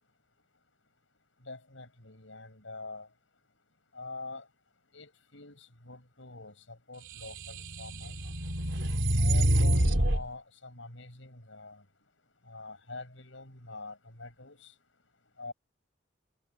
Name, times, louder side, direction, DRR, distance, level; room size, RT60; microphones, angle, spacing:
voice 1, 1.5-3.1 3.9-4.5 4.9-8.2 9.2-11.8 12.5-14.7 15.4-15.5, left 3 dB, 85° left, 7.2 m, -45 dB
sound 1, 7.3-10.2, right 1 dB, 80° right, 3.4 m, -26 dB
head